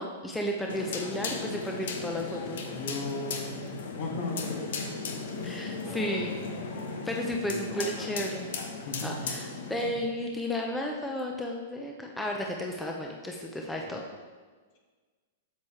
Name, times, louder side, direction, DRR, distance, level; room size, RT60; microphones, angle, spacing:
voice 1, 0.0-2.7 5.4-6.5 7.0-8.5 9.0-14.0, left 1 dB, 5° left, 0 dB, 0.7 m, -33 dB
sound 1, 0.7-9.9, left 4 dB, 70° left, 1.1 m, -36 dB
voice 2, 2.7-4.9 5.4-5.5 5.9-6.8 7.4-9.3 9.7-10.0 13.9-14.0, left 2 dB, 55° left, 0 dB, 2.0 m, -38 dB
8.2 x 7.2 x 3.3 m, 1.5 s
hypercardioid pair, 125°, 0 cm